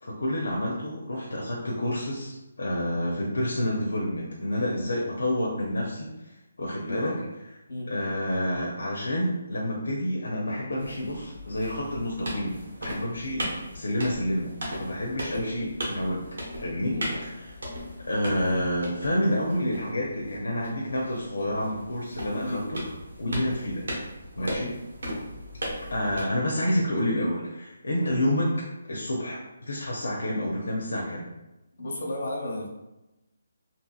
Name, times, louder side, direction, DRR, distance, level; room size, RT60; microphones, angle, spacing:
voice 1, 0.0-7.1 7.9-13.5 13.7-14.5 14.8-16.3 16.6-17.5 18.1-22.8 23.2-23.8 24.4-24.7 25.9-28.5 28.9-29.4 29.7-31.3, left 1 dB, 90° left, -3 dB, 0.6 m, -29 dB
voice 2, 6.8-7.3 7.7-7.9 15.3-15.5 16.9-17.1 22.3-22.6 23.3-23.4 24.4-24.6 28.0-28.1 31.8-32.7, left 1 dB, 65° left, -2 dB, 1.0 m, -34 dB
sound 1, 10.8-26.2, equal, 75° right, 1.1 m, -37 dB
2.9 x 2.7 x 2.3 m, 0.98 s
hypercardioid pair, 170°, 0 cm